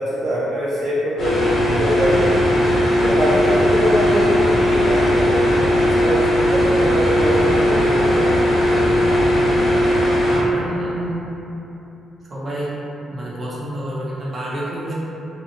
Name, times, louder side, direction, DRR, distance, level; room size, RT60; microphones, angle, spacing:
voice 1, 0.0-2.4 3.0-8.3 8.6-8.9, equal, 60° right, -9 dB, 0.5 m, -23 dB
sound 1, 1.2-10.4, equal, 50° left, 0.8 m, -17 dB
voice 2, 10.3-11.3 12.3-12.7 13.1-14.9, right 1 dB, 35° right, -7 dB, 0.8 m, -28 dB
2.7 x 2.3 x 2.8 m, 3.0 s
cardioid pair, 90°, 0 cm